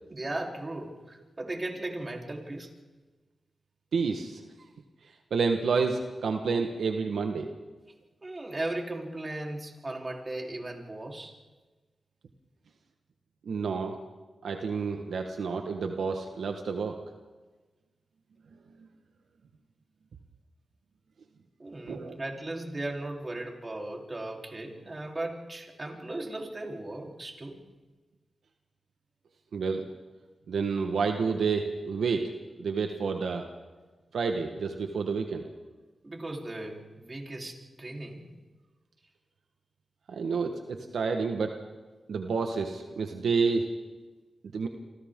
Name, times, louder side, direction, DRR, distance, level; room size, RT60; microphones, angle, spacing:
voice 1, 0.1-2.7 8.2-11.4 21.6-27.6 36.0-38.3, right 2 dB, 35° right, 0 dB, 3.7 m, -37 dB
voice 2, 3.9-4.4 5.3-7.5 13.4-14.0 14.4-17.0 21.9-22.1 29.5-29.8 30.5-32.3 32.6-33.5 34.1-35.5 40.1-41.6 42.1-43.7 44.5-44.7, right 5 dB, 85° right, 4 dB, 1.3 m, -29 dB
28.0 x 25.0 x 3.7 m, 1.3 s
cardioid pair, 50°, 0 cm